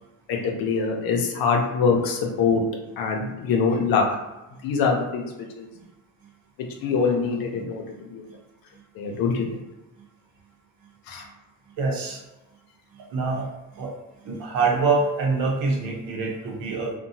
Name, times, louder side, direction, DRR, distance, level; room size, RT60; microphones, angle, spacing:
voice 1, 0.3-2.6 3.0-4.0 4.6-5.3 5.6-5.7 6.8-7.8 8.1-8.2 9.0-9.4 11.1-11.2, left 5 dB, 85° left, 1 dB, 0.7 m, -23 dB
voice 2, 11.8-12.2 13.1-13.5 13.7-13.9 14.2-16.9, right 4 dB, 75° right, -2 dB, 0.9 m, -25 dB
2.7 x 2.2 x 2.7 m, 1.0 s
cardioid pair, 105°, 34 cm